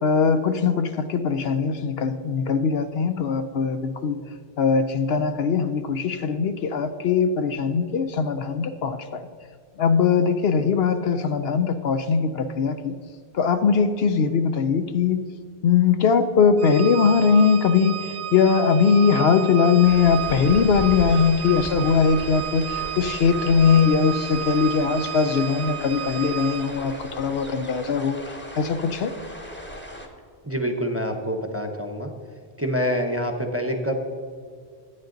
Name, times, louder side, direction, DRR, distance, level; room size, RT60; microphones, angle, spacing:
voice 1, 0.0-4.2 4.6-9.3 9.8-12.9 13.3-15.3 15.6-29.1, left 6 dB, 65° left, 9 dB, 0.8 m, -21 dB
Organ, 16.6-27.0, right 10 dB, 75° right, 0.9 m, -33 dB
sound 1, 19.8-30.1, equal, 10° left, 1.2 m, -38 dB
voice 2, 30.4-32.1 32.6-33.9, equal, 15° right, 3 dB, 0.8 m, -26 dB
12.0 x 9.0 x 3.9 m, 2.1 s
omnidirectional pair, 1.1 m